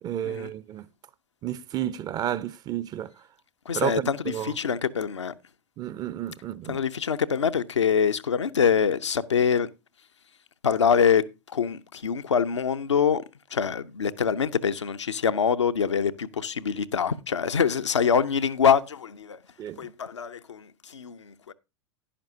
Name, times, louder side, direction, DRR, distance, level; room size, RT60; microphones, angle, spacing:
voice 1, 0.0-0.9 1.4-3.1 3.7-4.5 5.8-6.8 19.6-19.9, right 11 dB, 25° right, 0.5 m, -31 dB
voice 2, 3.6-5.3 6.6-9.7 10.6-13.2 13.5-19.4 19.8-21.5, left 7 dB, 75° left, 0.6 m, -25 dB
11.0 x 10.5 x 2.7 m
figure-of-eight pair, 95°, 15 cm